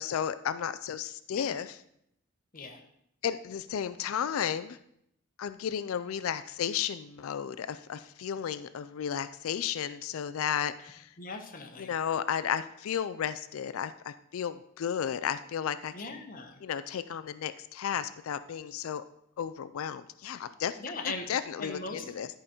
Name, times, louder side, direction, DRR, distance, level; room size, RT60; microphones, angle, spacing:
voice 1, 0.0-1.8 3.2-4.8 5.4-11.1 11.8-16.2 16.6-19.0 19.4-20.8 21.3-22.3, left 8 dB, 75° left, 13 dB, 0.4 m, -33 dB
voice 2, 11.2-11.9 15.9-16.6 20.8-21.3 21.6-22.0, left 3 dB, 40° left, 3 dB, 1.1 m, -39 dB
11.0 x 5.0 x 4.3 m, 0.74 s
head